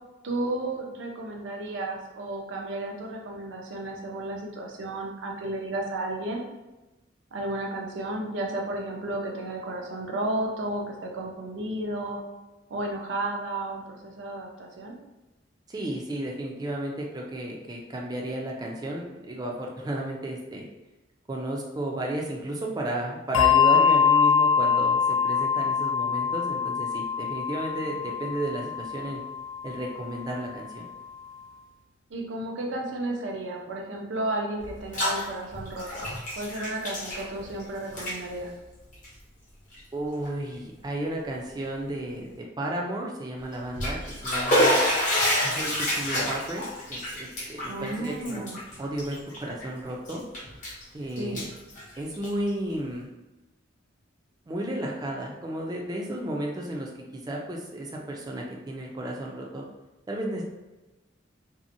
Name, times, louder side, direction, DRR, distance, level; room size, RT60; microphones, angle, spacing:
voice 1, 0.2-6.4 7.3-12.2 12.7-15.0 32.1-38.5 47.7-48.6 51.2-51.4, right 2 dB, 75° right, 0 dB, 0.5 m, -33 dB
voice 2, 15.7-20.7 21.3-29.2 29.6-30.9 39.9-42.3 42.6-44.0 44.2-44.8 45.4-46.6 46.9-48.5 48.8-50.2 50.9-51.5 52.0-53.1 54.5-59.6 60.1-60.4, right 1 dB, 20° right, -1 dB, 0.4 m, -33 dB
Bell, 23.3-30.2, left 7 dB, 90° left, 0.3 m, -24 dB
Bathtub (filling or washing), 34.6-35.2 35.5-37.6 37.9-38.2 38.9-39.1 39.7-39.8 40.3-40.4 43.5-49.7 50.1-50.8 51.2-52.5, left 1 dB, 40° left, 0.7 m, -28 dB
2.7 x 2.1 x 2.5 m, 1.1 s
head